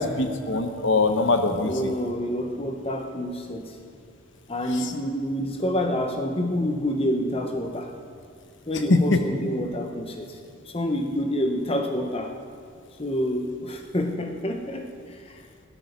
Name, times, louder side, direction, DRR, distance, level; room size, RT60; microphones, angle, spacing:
voice 1, 0.0-1.9 8.9-9.2, left 3 dB, 60° left, 6 dB, 1.1 m, -22 dB
voice 2, 1.6-3.8 4.5-7.9 8.7-10.4 10.6-12.3 13.0-15.4, equal, 30° left, 3 dB, 1.0 m, -28 dB
17.5 x 12.5 x 5.3 m, 2.3 s
head